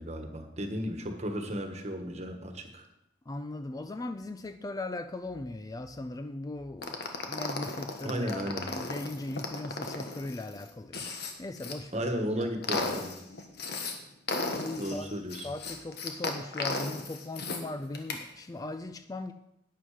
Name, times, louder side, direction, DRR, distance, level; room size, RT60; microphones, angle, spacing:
voice 1, 0.0-2.9 8.0-8.7 11.9-13.1 14.8-15.5, equal, 35° right, 1.4 m, -34 dB
voice 2, 3.3-12.1 12.4-12.5 14.5-15.1 15.4-19.3, left 2 dB, 20° left, 0.4 m, -39 dB
sound 1, 6.8-11.7 12.2-13.9 14.3-17.6 17.9-18.2, left 3 dB, 60° left, 1.5 m, -35 dB
11.5 x 9.4 x 4.9 m
head